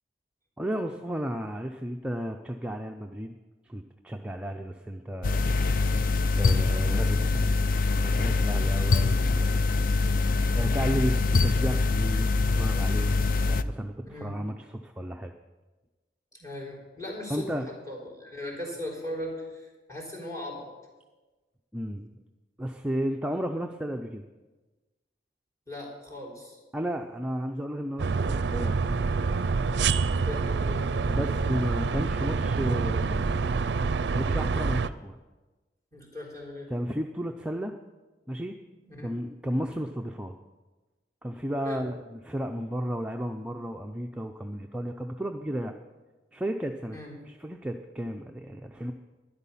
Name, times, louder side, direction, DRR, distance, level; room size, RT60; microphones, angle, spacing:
voice 1, 0.6-3.4 3.6-5.4 6.3-7.5 7.9-9.5 10.5-13.1 13.4-15.3 17.3-17.7 21.7-22.1 22.6-24.3 26.7-28.9 31.1-33.4 34.1-35.1 36.7-37.7 38.3-38.6 39.0-40.3 41.2-45.7 46.3-47.0 47.2-48.9, equal, 5° right, 3 dB, 0.5 m, -33 dB
sound 1, 5.2-13.6, left 3 dB, 50° left, 0.4 m, -24 dB
voice 2, 16.3-17.5 17.9-20.7 25.7-26.6 30.2-30.8 35.9-36.7 38.8-39.1 41.6-41.8 46.9-47.1, left 1 dB, 20° left, -3 dB, 3.8 m, -38 dB
sound 2, 28.0-34.9, right 4 dB, 65° right, 0.5 m, -27 dB
12.5 x 10.5 x 5.6 m, 1.2 s
head